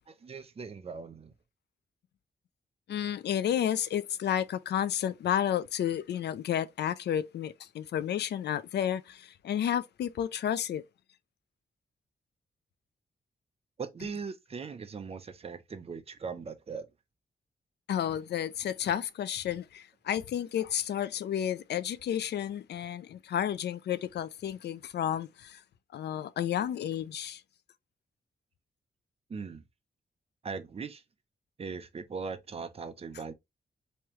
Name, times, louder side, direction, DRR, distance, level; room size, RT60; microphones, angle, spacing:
voice 1, 0.1-1.3 13.8-16.9 29.3-29.6 30.4-31.0 31.6-33.3, right 5 dB, 35° right, 0.6 m, -39 dB
voice 2, 2.9-10.8 17.9-25.6 25.9-27.4, left 10 dB, 80° left, 0.4 m, -31 dB
3.5 x 3.2 x 3.0 m
wide cardioid pair, 140°, 17 cm